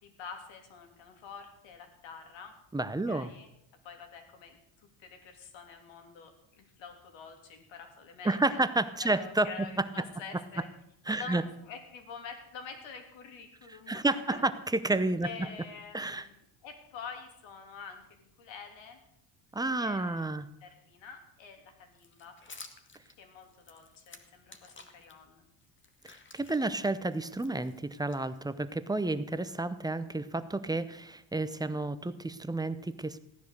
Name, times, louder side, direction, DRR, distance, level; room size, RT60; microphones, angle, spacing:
voice 1, 0.0-2.5 3.0-3.5 3.8-4.6 5.0-8.6 9.0-10.7 11.1-14.8 15.2-19.0 19.8-20.3 20.6-22.4 23.2-25.4, left 6 dB, 65° left, 5 dB, 3.3 m, -47 dB
voice 2, 2.7-3.3 8.2-9.5 11.1-11.4 13.9-14.5 14.8-15.5 15.9-16.2 19.5-20.5 26.3-33.2, right 2 dB, 10° right, 12 dB, 0.7 m, -30 dB
sound 1, 22.0-25.1 25.6-28.7, left 4 dB, 25° left, 1.6 m, -53 dB
16.0 x 10.0 x 6.7 m, 0.78 s
cardioid pair, 120°, 48 cm